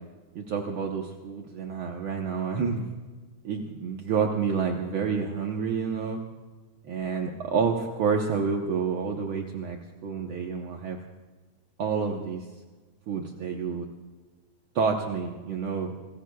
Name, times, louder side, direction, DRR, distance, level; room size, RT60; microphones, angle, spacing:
voice 1, 0.3-2.9 3.4-6.2 6.9-11.0 11.8-12.5 13.1-13.9 14.7-15.9, right 5 dB, 65° right, 1 dB, 1.3 m, -29 dB
27.0 x 21.0 x 2.3 m, 1.3 s
omnidirectional pair, 3.7 m